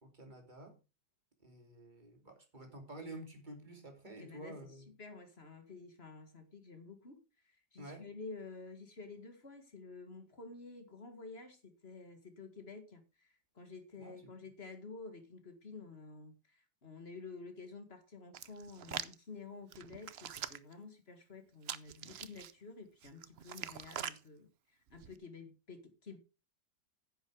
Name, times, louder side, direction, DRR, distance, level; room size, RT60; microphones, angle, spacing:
voice 1, 0.0-0.8 1.4-4.9 7.8-8.1 14.0-14.3, right 1 dB, 25° right, 2.9 m, -50 dB
voice 2, 4.2-4.6 5.0-24.5 24.9-26.2, left 4 dB, 35° left, 2.1 m, -51 dB
Hands, 18.3-19.1 19.7-20.7 21.6-22.5 23.0-24.2 24.9-25.2, right 9 dB, 60° right, 0.6 m, -43 dB
10.0 x 8.0 x 4.9 m
omnidirectional pair, 1.9 m